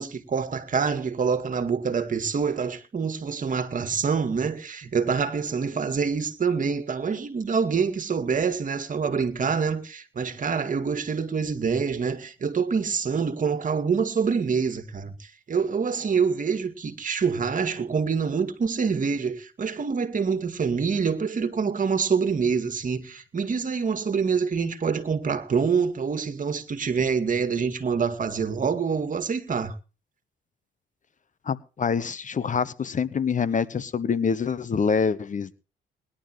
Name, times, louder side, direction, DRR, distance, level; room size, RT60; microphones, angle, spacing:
voice 1, 0.0-29.8, right 5 dB, 40° right, 2.2 m, -26 dB
voice 2, 31.5-35.5, left 6 dB, 40° left, 1.0 m, -26 dB
21.0 x 11.5 x 3.1 m
cardioid pair, 90°, 20 cm